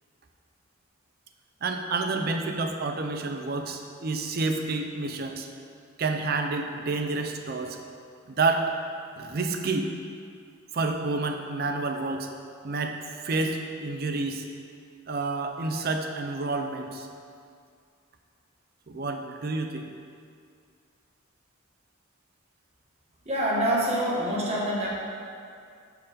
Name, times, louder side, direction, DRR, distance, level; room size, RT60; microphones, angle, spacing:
voice 1, 1.6-5.5 6.0-7.8 8.3-8.7 9.2-9.9 10.7-12.3 12.6-13.0 13.2-14.5 15.1-17.1 18.9-19.9, right 3 dB, 45° right, 4 dB, 0.5 m, -29 dB
voice 2, 23.2-24.9, right 1 dB, 30° right, -5 dB, 1.2 m, -26 dB
5.4 x 4.6 x 5.0 m, 2.3 s
head